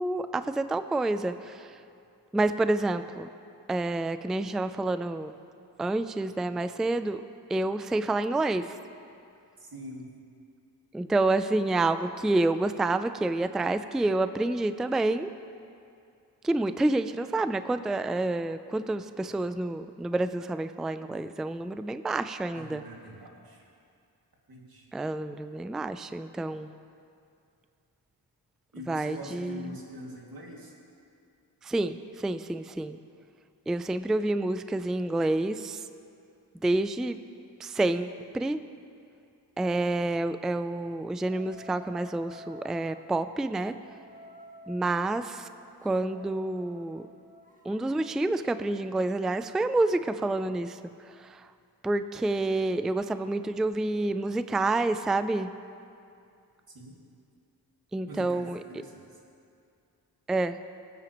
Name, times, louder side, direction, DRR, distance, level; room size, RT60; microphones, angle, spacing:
voice 1, 0.0-1.8 2.3-3.3 3.7-5.3 5.8-7.2 7.5-8.7 10.9-15.3 16.4-22.8 24.9-26.7 28.9-29.8 31.6-33.0 33.7-35.8 36.6-37.2 37.6-38.6 39.6-43.7 44.7-45.5 45.8-47.1 47.6-50.8 51.1-51.5 51.8-55.5 57.9-58.6 60.3-60.6, right 2 dB, ahead, 11 dB, 0.3 m, -28 dB
voice 2, 9.6-10.1 22.5-23.7 24.5-24.9 28.7-30.7 56.7-56.9 58.1-59.0, equal, 55° right, -2 dB, 2.4 m, -44 dB
sound 1, 41.3-43.0 43.7-48.2, left 1 dB, 20° right, 1.6 m, -51 dB
20.5 x 9.1 x 3.0 m, 2.5 s
cardioid pair, 60°, 42 cm